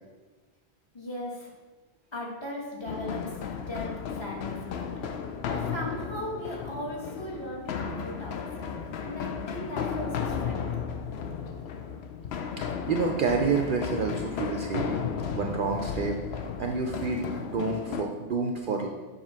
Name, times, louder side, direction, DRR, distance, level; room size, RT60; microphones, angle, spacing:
voice 1, 0.9-1.5 2.1-3.4 3.7-4.9 5.5-10.7, left 1 dB, 25° left, -4 dB, 1.4 m, -38 dB
sound 1, 2.9-18.0, left 6 dB, 75° left, 0.8 m, -34 dB
voice 2, 12.6-15.0 15.3-18.9, right 4 dB, 60° right, 2 dB, 0.6 m, -29 dB
7.3 x 2.9 x 5.6 m, 1.3 s
omnidirectional pair, 1.1 m